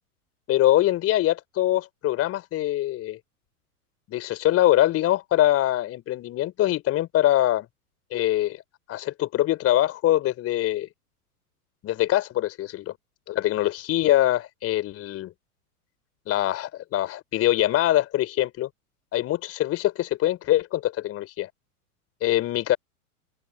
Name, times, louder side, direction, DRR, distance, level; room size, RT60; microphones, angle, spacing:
voice 1, 0.5-3.2 4.1-7.7 8.1-8.6 8.9-10.9 11.8-12.9 13.3-15.3 16.3-18.7 19.1-21.5 22.2-22.8, left 14 dB, 30° left, 4.2 m, -23 dB
open air
figure-of-eight pair, 100°, 45 cm